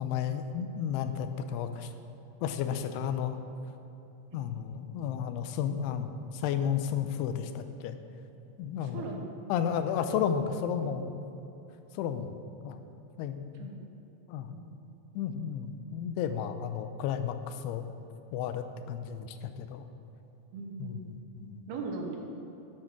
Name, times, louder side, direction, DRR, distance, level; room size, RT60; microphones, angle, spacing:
voice 1, 0.0-1.9 2.4-3.4 4.3-8.0 8.6-9.1 9.5-11.1 11.9-12.4 12.6-12.8 13.2-13.7 14.3-14.5 15.2-17.9 18.3-19.9 20.8-21.6, left 8 dB, 80° left, 8 dB, 2.7 m, -33 dB
voice 2, 8.8-9.4 9.9-10.0 13.6-13.9 14.5-14.9 20.5-21.1 21.7-22.2, right 4 dB, 70° right, 1 dB, 3.0 m, -40 dB
13.5 x 9.0 x 6.0 m, 3.0 s
omnidirectional pair, 4.8 m